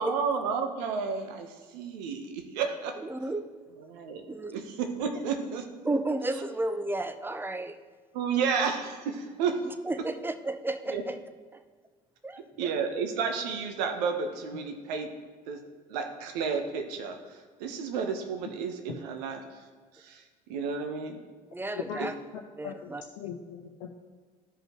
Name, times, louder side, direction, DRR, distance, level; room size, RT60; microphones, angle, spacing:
voice 1, 0.0-3.0 3.9-4.2 4.5-5.7 8.1-9.6 10.9-11.0 12.6-15.1 15.5-15.6 15.9-17.2 17.6-19.4 20.0-20.2 20.5-21.2 22.0-22.1, right 5 dB, 70° right, 5 dB, 1.0 m, -31 dB
voice 2, 3.0-3.5 4.3-4.6 5.8-7.8 9.9-11.2 12.2-12.7 21.5-22.1 22.6-23.0, right 2 dB, 10° right, 10 dB, 0.6 m, -32 dB
voice 3, 21.8-22.1 22.3-22.9 23.2-23.9, left 8 dB, 70° left, 0 dB, 0.8 m, -39 dB
13.5 x 5.3 x 3.0 m, 1.5 s
hypercardioid pair, 60°, 21 cm